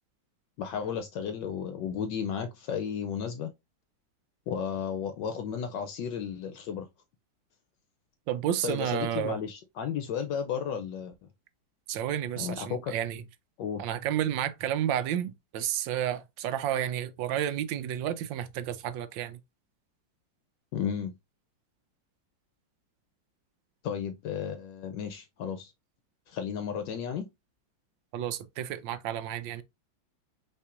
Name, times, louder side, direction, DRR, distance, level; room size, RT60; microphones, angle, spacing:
voice 1, 0.6-3.5 4.5-6.9 8.6-11.1 12.4-12.9 13.6-13.9 20.7-21.1 23.8-25.7 26.3-27.3, left 7 dB, 75° left, 1.2 m, -33 dB
voice 2, 8.3-9.4 11.9-13.2 13.8-19.4 28.1-29.6, right 10 dB, 80° right, 1.3 m, -31 dB
5.5 x 3.5 x 2.4 m
omnidirectional pair, 2.1 m